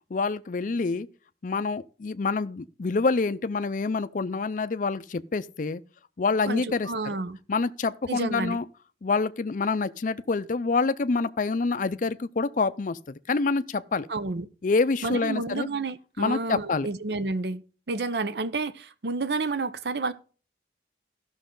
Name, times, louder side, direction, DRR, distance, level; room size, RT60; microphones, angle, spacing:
voice 1, 0.1-1.1 1.4-5.8 6.2-7.1 7.5-8.6 9.0-14.1 14.6-15.7 16.2-16.9, left 4 dB, 45° left, 0.5 m, -27 dB
voice 2, 6.4-7.4 8.1-8.6 14.1-14.5 15.0-17.6 17.9-20.1, right 3 dB, 65° right, 0.7 m, -30 dB
15.0 x 6.1 x 3.8 m
head